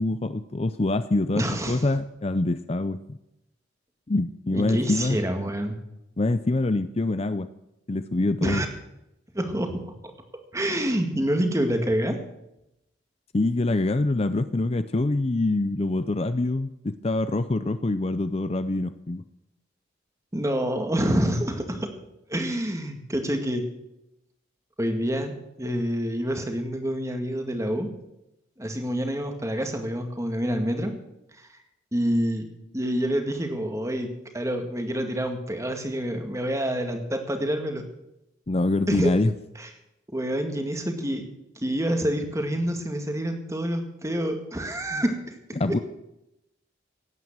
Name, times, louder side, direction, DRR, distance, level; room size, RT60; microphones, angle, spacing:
voice 1, 0.0-3.2 4.1-5.2 6.2-7.5 7.9-8.6 13.3-19.2 38.5-39.3 45.6-45.8, left 2 dB, 30° left, 12 dB, 0.5 m, -25 dB
voice 2, 1.4-1.8 4.5-5.8 8.4-8.7 9.3-10.1 10.5-12.2 20.3-21.9 22.3-23.6 24.8-25.3 25.6-27.9 28.6-30.9 31.4-31.6 31.9-32.5 32.7-37.8 38.9-39.1 39.6-39.7 40.1-41.2 41.6-45.4 45.6-45.8, equal, 15° right, 5 dB, 1.9 m, -27 dB
17.0 x 9.3 x 7.4 m, 0.87 s
head